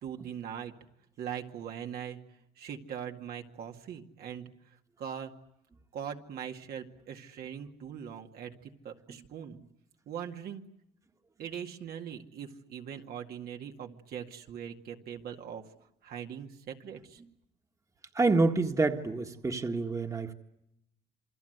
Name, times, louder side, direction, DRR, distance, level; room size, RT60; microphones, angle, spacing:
voice 1, 0.0-0.7 1.2-2.2 2.6-4.5 5.0-5.3 5.9-9.6 10.1-10.6 11.4-15.6 16.0-17.2, right 8 dB, 65° right, 3 dB, 2.2 m, -41 dB
voice 2, 18.1-20.3, right 3 dB, 20° right, 5 dB, 1.7 m, -27 dB
28.0 x 24.0 x 8.1 m, 0.82 s
cardioid pair, 110°, 17 cm